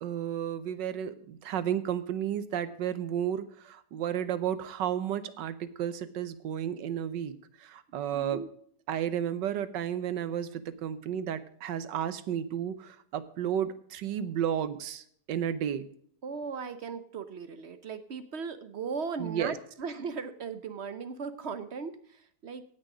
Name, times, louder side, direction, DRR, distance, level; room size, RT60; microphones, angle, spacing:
voice 1, 0.0-8.4 8.9-15.9 19.2-19.5, right 9 dB, 85° right, 14 dB, 1.5 m, -32 dB
voice 2, 8.1-8.5 16.2-22.6, right 5 dB, 50° right, 11 dB, 0.8 m, -38 dB
17.5 x 6.5 x 4.9 m, 0.63 s
omnidirectional pair, 1.9 m